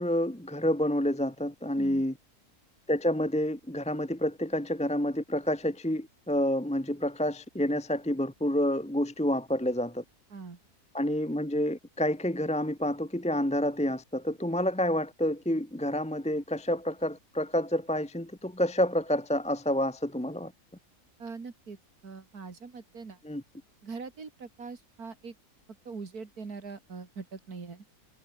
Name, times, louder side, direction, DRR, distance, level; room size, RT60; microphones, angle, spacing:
voice 1, 0.0-2.1 2.9-10.0 10.9-20.5 23.2-23.4, left 1 dB, 5° left, 0.8 m, -29 dB
voice 2, 21.2-21.8 22.0-23.2 23.8-25.3 25.8-27.8, right 4 dB, 85° right, 3.2 m, -42 dB
omnidirectional pair, 1.6 m